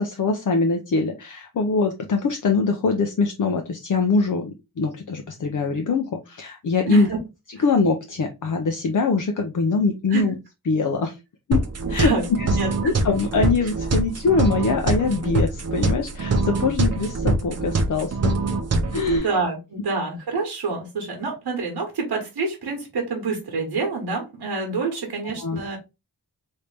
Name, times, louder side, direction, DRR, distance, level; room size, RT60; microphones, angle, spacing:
voice 1, 0.0-7.1 7.6-10.3 10.7-11.2 11.5-11.6 11.9-12.1 12.4-12.5 12.8-18.3 18.9-19.3 25.4-25.6, left 4 dB, 55° left, 4 dB, 0.6 m, -23 dB
voice 2, 6.9-7.2 10.1-10.2 11.8-13.0 19.2-25.8, right 4 dB, 90° right, 1 dB, 1.1 m, -27 dB
sound 1, 11.5-19.2, right 2 dB, 40° right, 0.6 m, -24 dB
3.3 x 2.7 x 3.2 m, 0.25 s
wide cardioid pair, 120°, 38 cm